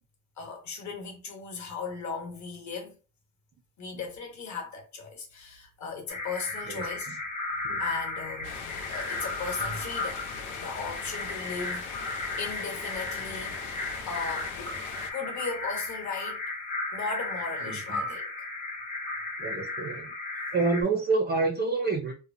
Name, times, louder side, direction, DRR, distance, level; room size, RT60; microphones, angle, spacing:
voice 1, 0.4-2.9 3.8-7.2 7.7-10.2 10.5-13.6 14.1-14.8 15.1-16.4 16.9-18.3, left 4 dB, 45° left, 1.0 m, -37 dB
sound 1, 6.1-20.8, left 2 dB, 20° left, 0.7 m, -35 dB
voice 2, 6.6-7.2 7.6-7.8 17.6-18.1 19.4-20.1 20.5-22.1, right 3 dB, 25° right, 0.4 m, -28 dB
sound 2, 8.4-15.1, left 6 dB, 75° left, 0.7 m, -41 dB
2.9 x 2.0 x 2.5 m
cardioid pair, 140°, 39 cm